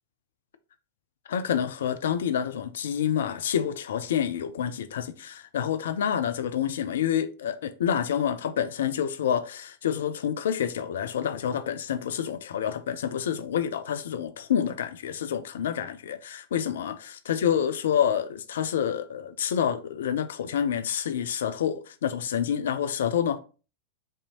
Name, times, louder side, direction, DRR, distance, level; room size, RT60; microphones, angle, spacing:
voice 1, 1.3-23.4, left 9 dB, 60° left, 0.3 m, -28 dB
5.3 x 2.7 x 2.9 m
figure-of-eight pair, 90°, 0 cm